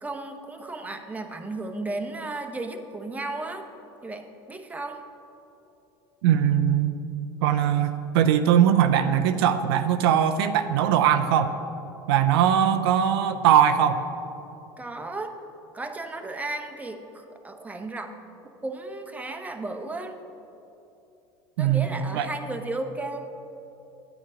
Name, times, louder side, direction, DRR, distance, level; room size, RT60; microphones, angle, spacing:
voice 1, 0.0-3.7 4.0-5.0 14.8-15.4 15.7-18.2 18.6-20.2 21.6-23.3, right 2 dB, 10° right, 5 dB, 0.9 m, -34 dB
voice 2, 6.2-7.0 7.4-11.5 12.1-14.0 21.6-21.9 22.1-22.3, right 9 dB, 75° right, 9 dB, 0.5 m, -21 dB
9.8 x 9.0 x 5.0 m, 2.9 s
hypercardioid pair, 90°, 13 cm